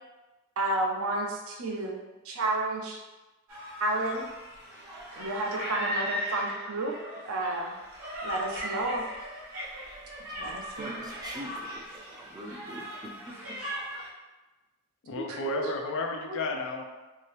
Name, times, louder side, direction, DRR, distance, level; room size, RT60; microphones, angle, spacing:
voice 1, 0.6-2.0 2.2-3.0 3.8-4.3 5.2-7.0 7.2-7.8 8.2-9.0 10.4-11.1 15.3-15.7 16.1-16.4, right 2 dB, 75° right, 0 dB, 0.6 m, -31 dB
sound 1, 3.5-14.1, equal, 90° right, 1.0 m, -38 dB
voice 2, 10.8-13.6, right 1 dB, 20° right, 0 dB, 0.4 m, -43 dB
voice 3, 15.1-16.8, left 3 dB, 60° left, 3 dB, 0.4 m, -33 dB
2.8 x 2.7 x 3.2 m, 1.1 s
head